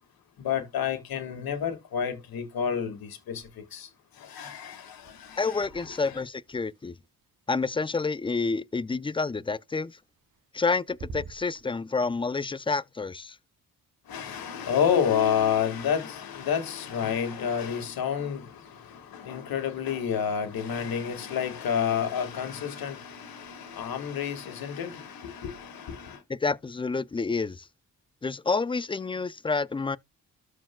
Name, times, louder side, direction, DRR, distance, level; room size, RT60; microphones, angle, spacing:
voice 1, 0.4-3.4 3.7-3.9 4.2-6.2 14.1-26.2, left 8 dB, 80° left, 1.8 m, -30 dB
sound 1, 3.3-4.0 4.2-8.4 10.0-10.6 10.9-11.7, right 4 dB, 60° right, 2.0 m, -48 dB
voice 2, 5.4-6.9 7.5-10.0 10.5-13.4 26.3-27.7 28.2-30.0, left 4 dB, 15° left, 0.4 m, -29 dB
13.5 x 4.6 x 2.2 m
cardioid pair, 65°, 35 cm